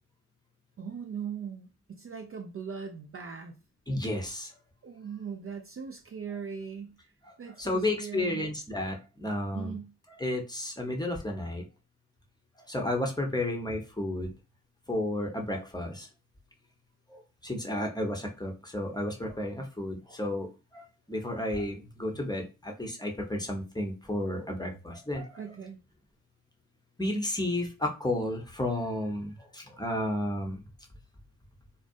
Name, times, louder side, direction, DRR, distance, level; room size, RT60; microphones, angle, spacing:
voice 1, 0.8-3.5 4.8-6.9 7.4-8.5 9.5-9.9 25.3-25.8, right 6 dB, 35° right, 3 dB, 0.4 m, -39 dB
voice 2, 3.9-4.5 7.6-9.8 10.2-11.6 12.7-14.3 14.9-16.1 17.4-20.5 20.7-20.8 21.1-25.4 27.0-30.6, left 1 dB, 10° left, 1 dB, 0.7 m, -32 dB
2.4 x 2.1 x 2.5 m, 0.30 s
supercardioid pair, 45°, 41 cm